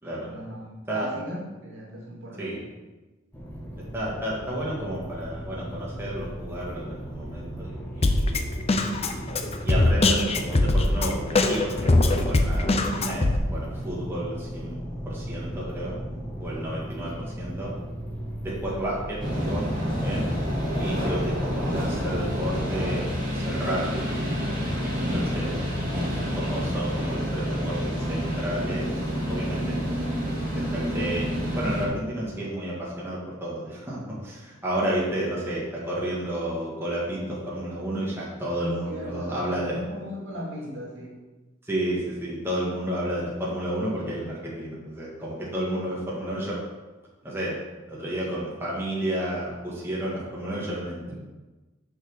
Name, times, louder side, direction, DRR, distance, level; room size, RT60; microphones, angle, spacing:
voice 1, 0.2-2.7 17.0-17.1 38.6-41.2, equal, 65° right, -3 dB, 2.6 m, -37 dB
sound 1, 3.3-22.6, equal, 10° left, 1.6 m, -37 dB
voice 2, 3.9-8.3 9.1-15.9 16.4-17.7 18.4-20.3 20.8-24.0 25.0-25.5 26.2-28.9 29.3-29.8 30.2-39.8 41.6-46.6 47.2-47.6 47.9-51.1, right 1 dB, 10° right, -6 dB, 1.7 m, -31 dB
Drum kit, 8.0-13.4, left 2 dB, 30° left, 0.6 m, -22 dB
sound 2, 19.2-31.9, equal, 40° right, 2.6 m, -28 dB
6.5 x 5.8 x 6.4 m, 1.2 s
head